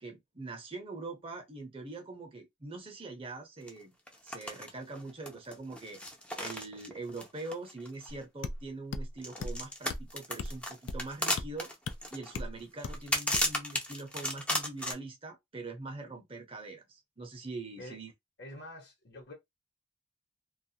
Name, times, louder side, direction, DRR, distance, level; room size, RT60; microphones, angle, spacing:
voice 1, 0.0-3.9 4.2-6.0 6.3-11.7 12.1-18.1, right 3 dB, 30° right, 0.7 m, -43 dB
sound 1, 3.7-3.8 4.1-4.7 5.0-8.2 9.2-14.9, left 1 dB, 5° left, 0.5 m, -34 dB
sound 2, 8.1-8.2 8.4-8.6 8.9-9.1 9.4-9.6 9.9-10.1 10.4-10.6 10.9-11.0 11.4-11.5 11.9-12.0 12.3-12.5 12.8-13.0 13.3-13.5, left 2 dB, 90° left, 0.4 m, -36 dB
voice 2, 18.4-19.3, left 1 dB, 60° left, 1.0 m, -46 dB
2.4 x 2.1 x 2.7 m
head